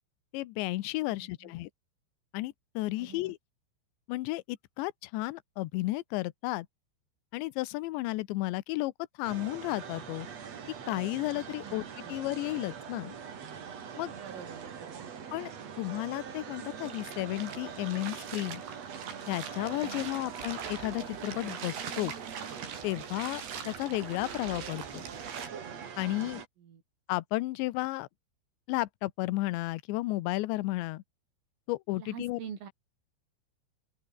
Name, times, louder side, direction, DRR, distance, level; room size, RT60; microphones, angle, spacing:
voice 1, 0.3-1.7 2.3-3.4 4.1-6.7 7.3-8.9 9.2-10.3 10.9-11.8 12.1-13.2 14.0-14.1 15.3-15.5 15.8-18.6 19.3-22.1 22.8-25.0 26.0-26.4 27.1-28.1 28.7-31.0 31.7-32.4, left 19 dB, 80° left, 2.9 m, -33 dB
voice 2, 1.1-1.5 3.0-3.3 11.6-11.7 12.0-12.1 14.2-15.1 19.8-20.1 26.2-26.3 26.6-26.8 32.0-32.7, right 8 dB, 75° right, 6.7 m, -46 dB
sound 1, 9.2-26.5, right 7 dB, 40° right, 2.8 m, -43 dB
sound 2, 16.8-25.5, right 7 dB, 60° right, 6.0 m, -43 dB
open air
omnidirectional pair, 5.9 m